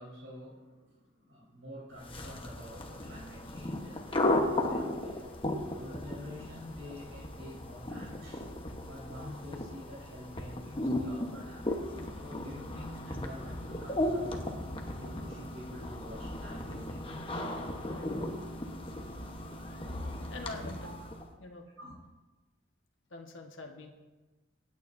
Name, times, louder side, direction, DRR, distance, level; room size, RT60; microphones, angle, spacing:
voice 1, 0.0-5.3 5.6-11.7 12.2-14.4 15.0-17.4 20.8-20.9 21.8-21.9, left 1 dB, 85° right, -6 dB, 4.3 m, -47 dB
sound 1, 2.0-21.3, left 1 dB, 25° left, 1.1 m, -36 dB
voice 2, 20.3-21.0 21.4-21.7 23.1-23.9, left 2 dB, 65° left, 2 dB, 1.5 m, -44 dB
26.0 x 9.2 x 2.7 m, 1.2 s
head